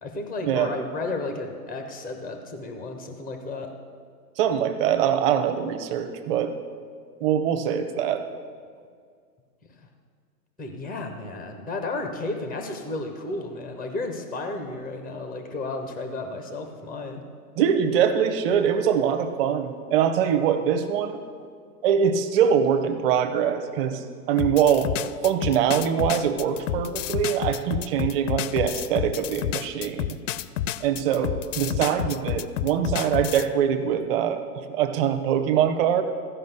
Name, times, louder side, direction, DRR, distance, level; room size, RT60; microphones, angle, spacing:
voice 1, 0.0-3.7 10.6-17.2, left 2 dB, ahead, 4 dB, 0.4 m, -33 dB
voice 2, 4.4-6.5 7.2-8.2 17.6-21.2 21.8-24.9 25.2-30.2 30.8-36.0, right 8 dB, 40° right, 9 dB, 1.0 m, -23 dB
sound 1, 24.4-33.5, left 12 dB, 55° left, 0.5 m, -29 dB
14.5 x 5.3 x 6.7 m, 2.1 s
hypercardioid pair, 125°, 47 cm